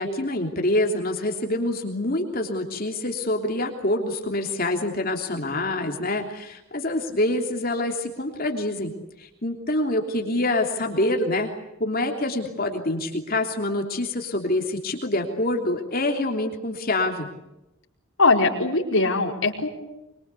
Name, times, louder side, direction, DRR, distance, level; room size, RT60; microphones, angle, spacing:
voice 1, 0.0-8.9 9.2-11.5 11.8-17.3, left 1 dB, 40° left, 3 dB, 3.2 m, -26 dB
voice 2, 18.2-19.7, left 3 dB, 65° left, 1 dB, 4.7 m, -21 dB
25.0 x 24.0 x 8.4 m, 0.91 s
head